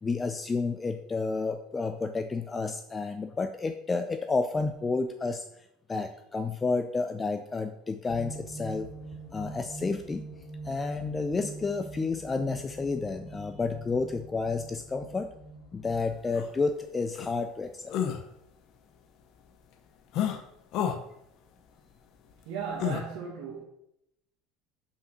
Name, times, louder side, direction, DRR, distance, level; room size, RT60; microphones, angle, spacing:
voice 1, 0.0-8.9 9.3-10.2 10.6-15.3 15.7-17.9, left 4 dB, 15° left, 0.3 m, -31 dB
sound 1, 8.1-16.1, right 2 dB, 75° left, 1.9 m, -43 dB
sound 2, 16.4-16.5 17.1-17.3 17.9-18.2 20.1-20.4 20.7-21.0 22.8-23.0, left 9 dB, 45° left, 0.8 m, -29 dB
voice 2, 22.4-23.7, right 6 dB, 75° right, 1.5 m, -36 dB
5.6 x 5.5 x 5.8 m
cardioid pair, 170°, 0 cm